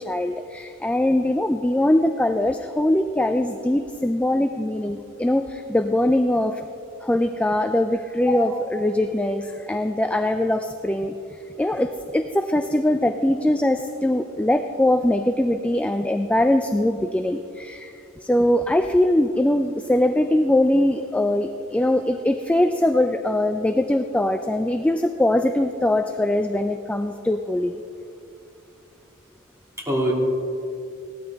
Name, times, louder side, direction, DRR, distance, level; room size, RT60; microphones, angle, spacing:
voice 1, 0.0-6.6 7.0-27.8, left 1 dB, 5° left, 7 dB, 0.3 m, -22 dB
voice 2, 8.3-8.6 29.8-30.1, equal, 15° right, -3 dB, 2.3 m, -24 dB
17.0 x 12.5 x 3.5 m, 2.6 s
head